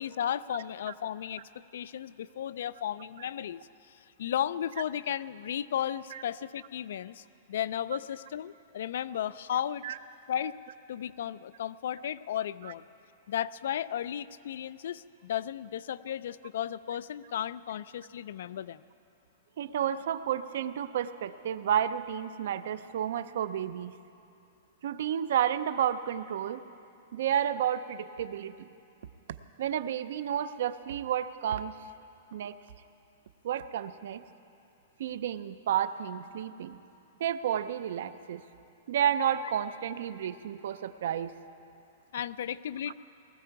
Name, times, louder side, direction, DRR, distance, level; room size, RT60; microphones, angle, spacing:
voice 1, 0.0-3.6 4.2-9.8 10.3-10.6 10.9-12.8 13.3-18.8 42.1-42.9, left 10 dB, 65° left, 17 dB, 0.3 m, -34 dB
voice 2, 19.6-23.9 24.8-26.6 27.1-28.7 29.6-31.7 32.3-32.6 33.4-34.2 35.0-36.8 37.2-38.4 38.9-41.3 42.9-43.0, right 9 dB, 60° right, 13 dB, 0.5 m, -31 dB
19.0 x 13.5 x 4.7 m, 2.7 s
supercardioid pair, 175°, 0 cm